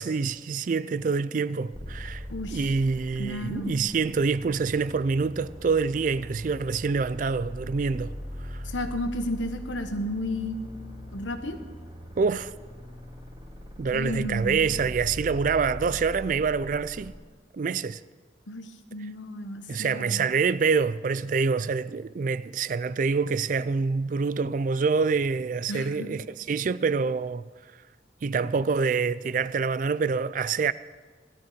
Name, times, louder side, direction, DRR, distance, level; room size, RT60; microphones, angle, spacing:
voice 1, 0.0-2.2 2.5-8.1 8.5-8.6 12.2-12.5 13.8-17.1 17.5-18.0 19.7-27.4 28.2-30.7, right 5 dB, 45° right, 0.3 m, -26 dB
sound 1, 1.7-17.1, equal, 25° right, 2.5 m, -41 dB
voice 2, 2.3-2.6 3.2-3.7 8.6-10.6 11.1-11.6 13.9-14.6 18.5-20.2 25.7-26.1, left 1 dB, 90° left, 1.3 m, -32 dB
17.0 x 12.5 x 5.1 m
head